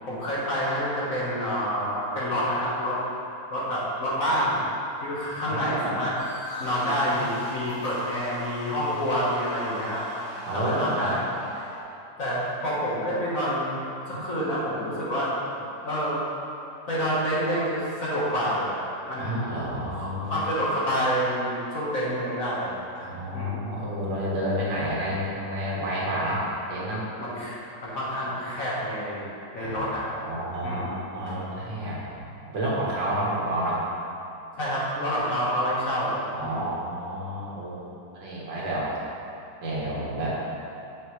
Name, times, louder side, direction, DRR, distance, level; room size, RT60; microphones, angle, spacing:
voice 1, 0.0-3.0 3.5-4.6 5.0-6.1 6.6-11.2 11.6-11.7 12.2-13.8 14.1-15.3 15.8-16.2 16.9-18.8 19.1-19.4 19.9-22.8 23.3-23.7 27.2-29.2 29.5-30.1 30.6-30.9 34.6-36.6, equal, 50° left, -8 dB, 1.6 m, -28 dB
voice 2, 5.4-6.0 10.5-11.2 19.2-20.4 23.0-27.0 29.6-29.9 30.2-33.8 36.3-37.8 38.1-38.9 39.6-40.5, equal, 85° right, -6 dB, 2.3 m, -30 dB
sound 1, 6.2-11.8, equal, 40° right, 2.1 m, -40 dB
7.2 x 6.9 x 3.1 m, 2.8 s
omnidirectional pair, 2.0 m